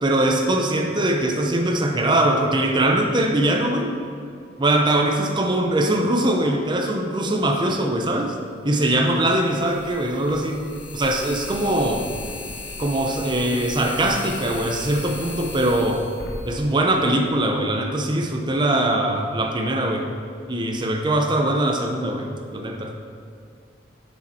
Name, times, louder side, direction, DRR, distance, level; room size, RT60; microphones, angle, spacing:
voice 1, 0.0-3.9 4.6-8.4 8.6-10.6 10.9-12.1 12.8-16.0 16.4-20.1 20.5-22.9, right 1 dB, 25° right, 2 dB, 0.7 m, -22 dB
sound 1, 8.0-8.1 9.4-17.4, left 2 dB, 80° left, 1.3 m, -36 dB
7.6 x 6.4 x 4.3 m, 2.3 s
head